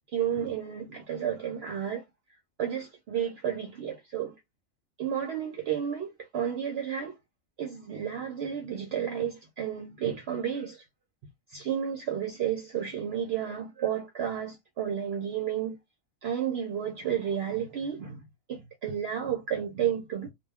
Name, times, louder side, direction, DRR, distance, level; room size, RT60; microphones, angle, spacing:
voice 1, 0.1-2.0 2.6-4.4 5.0-7.2 7.6-10.9 11.5-15.8 16.2-20.3, right 9 dB, 60° right, 0.7 m, -32 dB
2.4 x 2.2 x 3.3 m
omnidirectional pair, 1.4 m